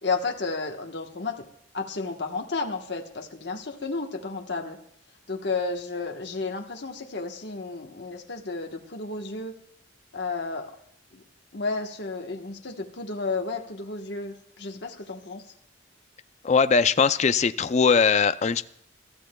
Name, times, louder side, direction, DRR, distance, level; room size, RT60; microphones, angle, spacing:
voice 1, 0.0-1.4 1.7-4.8 5.3-9.6 10.1-10.7 11.1-11.2 11.5-15.4, left 3 dB, 60° left, 1.2 m, -32 dB
voice 2, 16.4-18.7, left 5 dB, 35° left, 0.4 m, -20 dB
26.0 x 13.5 x 2.3 m
head